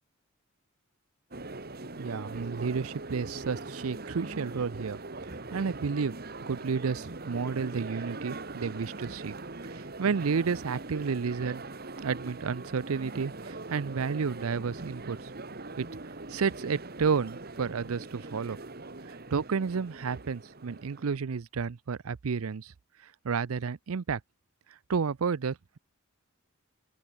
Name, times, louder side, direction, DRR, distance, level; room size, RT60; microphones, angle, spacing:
sound 1, 1.3-21.2, right 2 dB, 45° right, 1.8 m, -42 dB
voice 1, 2.0-5.0 5.5-6.1 6.5-9.3 9.7-11.6 12.0-15.2 15.8-15.9 16.3-18.6 19.3-22.7 23.2-24.2 24.9-25.8, right 5 dB, 80° right, 0.5 m, -31 dB
open air
head